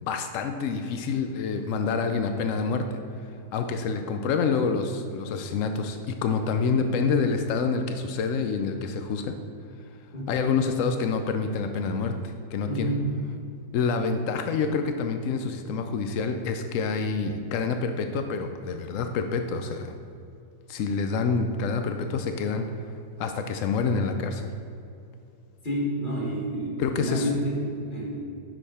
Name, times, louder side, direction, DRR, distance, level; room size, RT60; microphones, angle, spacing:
voice 1, 0.0-3.0 3.5-9.3 10.3-12.9 13.7-19.9 20.7-22.7 23.2-24.5 26.8-27.3, left 5 dB, 85° left, 6 dB, 0.7 m, -27 dB
voice 2, 12.7-13.1 25.6-28.2, equal, 30° left, -4 dB, 1.9 m, -29 dB
9.0 x 6.6 x 4.2 m, 2.6 s
omnidirectional pair, 2.0 m